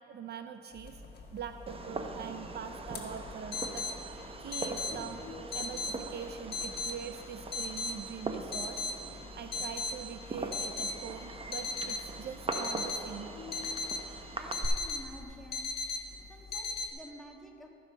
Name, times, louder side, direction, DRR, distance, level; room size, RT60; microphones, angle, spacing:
voice 1, 0.1-1.0 1.3-5.2 5.5-8.9 9.1-13.3, right 7 dB, 55° right, 8 dB, 0.5 m, -43 dB
sound 1, 0.8-16.9, left 3 dB, 55° left, 1.4 m, -39 dB
Fireworks, 1.7-14.7, right 3 dB, 30° right, 0.8 m, -42 dB
voice 2, 14.4-15.7 16.3-17.7, equal, ahead, -1 dB, 1.4 m, -50 dB
13.0 x 5.6 x 5.1 m, 2.8 s
cardioid pair, 90°, 20 cm